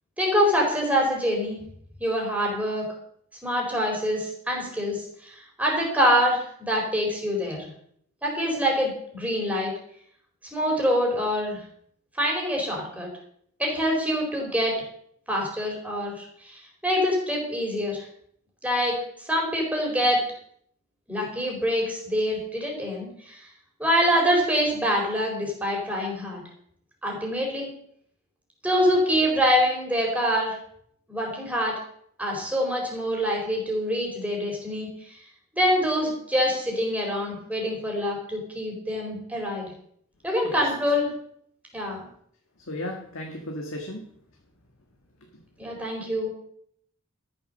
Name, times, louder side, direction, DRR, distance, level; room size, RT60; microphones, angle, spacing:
voice 1, 0.2-1.6 2.0-2.9 3.4-7.7 8.2-9.7 10.5-11.6 12.2-13.1 13.6-14.7 15.3-18.1 18.6-19.0 19.2-20.2 21.1-23.4 23.8-26.4 27.0-27.7 28.6-30.6 31.1-31.7 32.2-34.9 35.5-39.7 40.2-41.1 41.7-42.1 45.6-46.3, equal, 5° right, -1 dB, 4.3 m, -25 dB
voice 2, 42.6-44.1, left 1 dB, 65° left, 1 dB, 1.8 m, -34 dB
13.0 x 7.5 x 6.6 m, 0.66 s
head